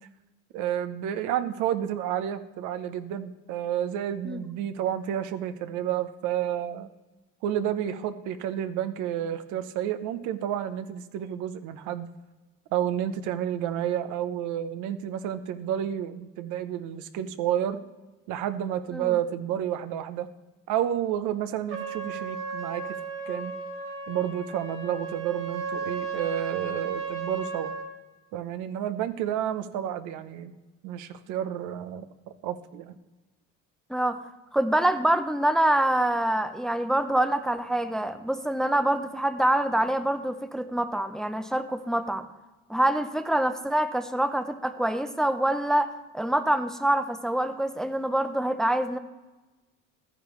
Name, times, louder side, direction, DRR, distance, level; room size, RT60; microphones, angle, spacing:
voice 1, 0.5-6.9 7.4-12.1 12.7-17.8 18.3-20.3 20.7-22.9 23.3-23.5 24.1-27.7 28.3-30.5 30.8-32.0 32.4-33.0, right 10 dB, 75° right, 11 dB, 0.8 m, -30 dB
Trumpet, 21.7-27.9, right 5 dB, 40° right, 2.0 m, -34 dB
voice 2, 34.5-42.3 42.7-49.0, right 1 dB, ahead, 9 dB, 0.5 m, -25 dB
12.5 x 10.0 x 3.1 m, 1.2 s
cardioid pair, 115°, 30 cm